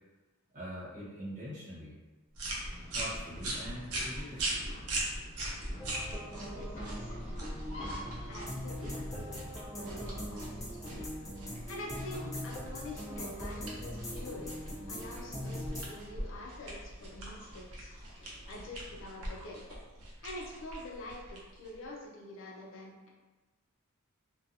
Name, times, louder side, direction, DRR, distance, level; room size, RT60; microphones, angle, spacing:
voice 1, 0.5-2.0 2.9-4.7, equal, 35° right, -9 dB, 1.1 m, -43 dB
sound 1, 2.3-21.9, right 1 dB, 80° right, 0.6 m, -41 dB
sound 2, 2.6-19.1, equal, 40° left, 1.3 m, -50 dB
sound 3, 5.8-15.9, equal, 15° left, 0.5 m, -41 dB
voice 2, 6.5-7.1 8.2-9.4 9.8-11.0 11.7-14.6 14.9-19.6 20.2-23.1, left 2 dB, 65° left, -2 dB, 0.5 m, -46 dB
2.6 x 2.2 x 2.6 m, 1.2 s
head